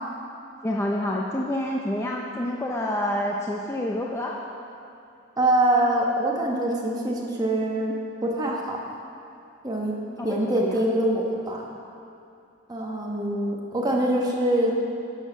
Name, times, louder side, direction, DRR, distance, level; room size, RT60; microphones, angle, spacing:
voice 1, 0.6-4.4 10.2-10.8, left 1 dB, 10° left, -1 dB, 0.5 m, -28 dB
voice 2, 5.4-7.9 8.2-8.8 9.6-9.9 10.2-11.7 12.7-14.7, right 1 dB, 20° right, -2 dB, 1.1 m, -24 dB
11.0 x 6.4 x 5.9 m, 2.6 s
head